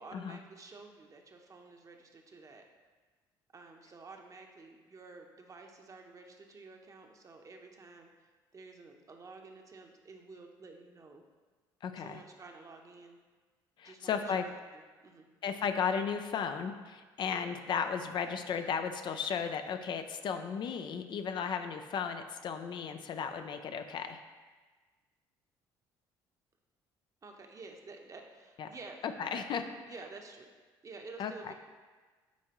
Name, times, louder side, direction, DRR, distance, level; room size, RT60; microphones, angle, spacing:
voice 1, 0.0-2.6 3.5-8.1 8.5-11.2 12.0-13.2 13.8-15.3 27.2-29.0 29.3-29.5 29.9-30.5 30.8-31.5, right 3 dB, 35° right, 3 dB, 0.9 m, -51 dB
voice 2, 11.8-12.2 13.8-14.4 15.4-24.2 28.6-28.7 29.2-29.6 31.2-31.5, left 6 dB, 50° left, 7 dB, 0.5 m, -35 dB
8.4 x 4.2 x 3.0 m, 1.4 s
supercardioid pair, 70°, 10 cm